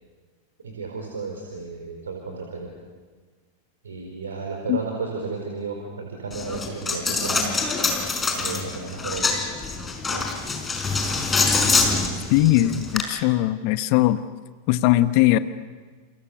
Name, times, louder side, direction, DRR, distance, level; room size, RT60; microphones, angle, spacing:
voice 1, 0.6-2.7 3.8-7.6 8.4-9.4 10.1-10.3 11.7-12.0, right 4 dB, 70° right, 2 dB, 4.4 m, -33 dB
Coin (dropping), 6.3-13.0, left 4 dB, 15° left, 4.9 m, -25 dB
voice 2, 12.3-14.2 14.7-15.4, left 15 dB, 45° left, 13 dB, 1.0 m, -19 dB
29.5 x 29.5 x 6.9 m, 1.5 s
figure-of-eight pair, 90°, 0 cm